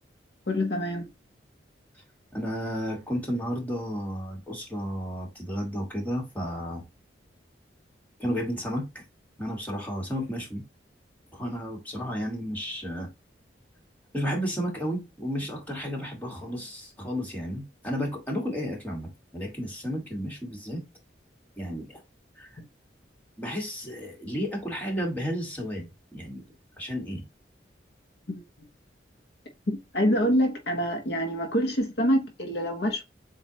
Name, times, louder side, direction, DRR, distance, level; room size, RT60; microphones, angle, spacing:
voice 1, 0.5-1.1 28.3-28.4 29.7-33.0, equal, 60° left, 0.9 m, -26 dB
voice 2, 2.3-6.8 8.2-9.0 9.4-10.6 11.3-13.1 14.1-20.8 21.6-22.0 22.4-22.5 23.4-26.4 26.8-27.2, equal, 10° left, 1.5 m, -32 dB
7.3 x 2.5 x 2.8 m
head